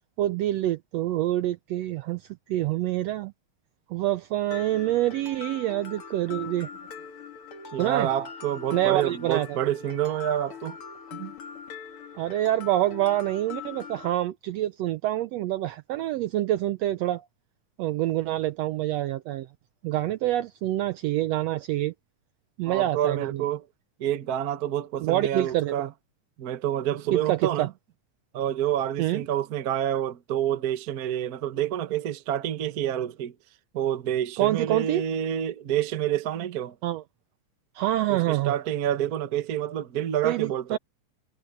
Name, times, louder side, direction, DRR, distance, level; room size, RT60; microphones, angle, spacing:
voice 1, 0.2-3.3 3.9-6.7 7.8-8.1 8.7-9.6 12.2-17.2 17.8-19.5 19.8-21.9 22.6-23.4 25.0-25.9 27.1-27.7 29.0-29.2 34.4-35.0 36.8-37.0 37.7-38.5 40.2-40.8, right 14 dB, 75° right, 1.5 m, -26 dB
Mallet percussion, 4.5-14.1, left 7 dB, 50° left, 2.5 m, -42 dB
voice 2, 7.7-10.8 11.1-11.3 22.7-23.6 24.0-25.9 26.4-27.7 28.3-33.3 33.7-36.7 38.1-40.8, right 11 dB, 55° right, 1.0 m, -28 dB
omnidirectional pair, 3.5 m